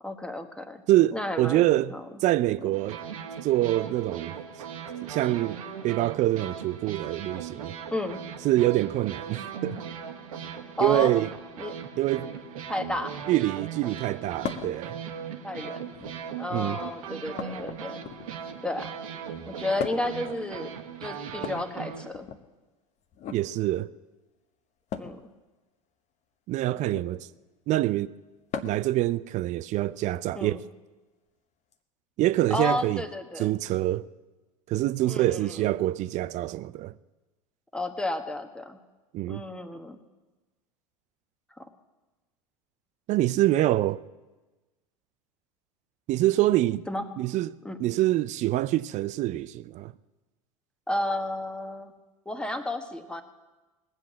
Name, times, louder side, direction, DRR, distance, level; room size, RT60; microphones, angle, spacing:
voice 1, 0.0-0.8 1.1-2.0 2.6-2.8 7.9-8.3 10.8-11.1 11.6-11.8 12.7-13.2 15.4-15.9 16.4-18.0 18.6-18.9 19.5-20.7 21.0-22.3 25.0-25.2 30.3-30.6 32.5-33.6 35.1-35.7 37.7-38.8 39.3-40.0 41.6-41.7 46.9-47.1 47.6-47.9 50.9-51.9 52.2-53.2, left 1 dB, 5° left, 1.3 m, -32 dB
voice 2, 0.9-1.9 2.2-3.0 3.4-4.3 5.0-5.6 5.8-7.7 8.4-9.8 10.8-11.3 12.0-12.3 13.3-15.0 16.5-16.8 23.3-23.9 26.5-27.3 27.7-28.1 28.6-30.6 32.2-33.0 33.4-34.1 34.7-36.9 39.1-39.4 43.1-44.0 46.1-46.8 47.2-47.5 47.8-49.9, right 15 dB, 40° right, 0.5 m, -25 dB
sound 1, 2.7-22.1, right 7 dB, 75° right, 1.4 m, -39 dB
sound 2, 14.4-14.8 15.8-16.3 17.4-18.5 19.8-20.2 21.3-22.4 23.1-23.4 24.9-25.2 26.8-27.1 28.5-28.9 30.4-30.5 31.7-31.8, left 8 dB, 40° left, 1.0 m, -37 dB
19.0 x 7.8 x 7.4 m
hypercardioid pair, 85°, 18 cm